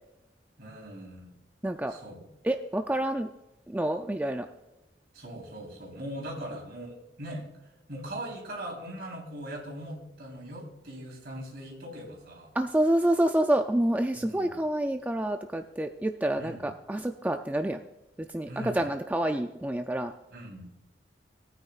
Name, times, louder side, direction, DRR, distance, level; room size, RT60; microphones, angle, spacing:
voice 1, 0.6-1.3 1.9-2.2 5.1-7.5 7.9-12.5 14.1-14.5 16.4-16.7 18.5-18.9 20.3-20.7, right 1 dB, 60° right, 0 dB, 3.6 m, -40 dB
voice 2, 2.4-3.3 3.7-4.5 12.6-17.8 18.3-20.1, right 1 dB, 10° right, 6 dB, 0.3 m, -28 dB
18.5 x 9.3 x 2.4 m, 0.98 s
head